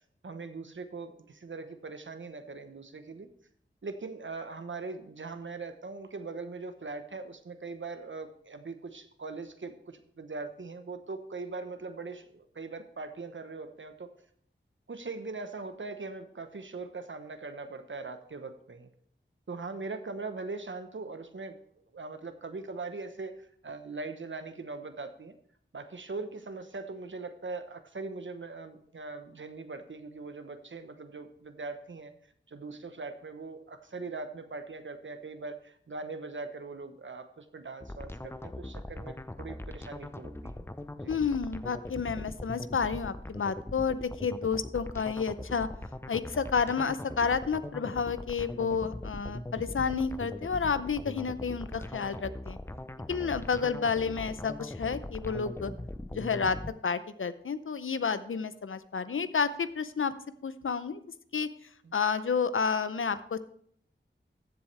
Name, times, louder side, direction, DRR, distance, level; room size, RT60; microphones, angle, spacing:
voice 1, 0.2-3.3 3.8-14.1 14.9-18.9 19.5-21.6 21.9-25.3 25.7-32.1 32.5-40.7 41.0-41.1 61.8-61.9, right 3 dB, 70° right, 9 dB, 1.0 m, -41 dB
sound 1, 37.8-56.7, left 1 dB, 10° left, 0.6 m, -41 dB
voice 2, 41.1-45.7 46.1-52.6 53.1-55.7 56.1-60.1 60.4-61.0 61.3-61.5 61.9-63.4, left 5 dB, 80° left, 13 dB, 0.6 m, -30 dB
14.5 x 7.1 x 3.3 m, 0.64 s
wide cardioid pair, 45°, 20 cm